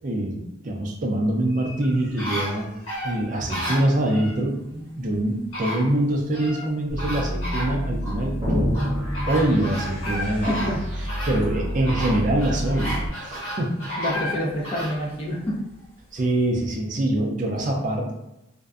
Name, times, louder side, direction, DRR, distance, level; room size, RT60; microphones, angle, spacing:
voice 1, 0.0-2.7 3.0-8.7 9.3-10.7 11.3-14.0 16.1-18.1, right 1 dB, 35° right, 0 dB, 0.4 m, -24 dB
sound 1, 1.5-4.4 5.1-5.2 5.5-6.7 7.0-8.2 8.7-15.0 15.5-15.6, equal, 80° left, 1.2 m, -32 dB
sound 2, 6.9-13.1, equal, 55° left, 0.8 m, -30 dB
sound 3, 8.4-10.0, equal, 20° right, 1.2 m, -27 dB
voice 2, 10.3-10.8 11.1-11.5 14.0-15.6, equal, 25° left, -5 dB, 0.6 m, -28 dB
2.5 x 2.1 x 2.3 m, 0.89 s
head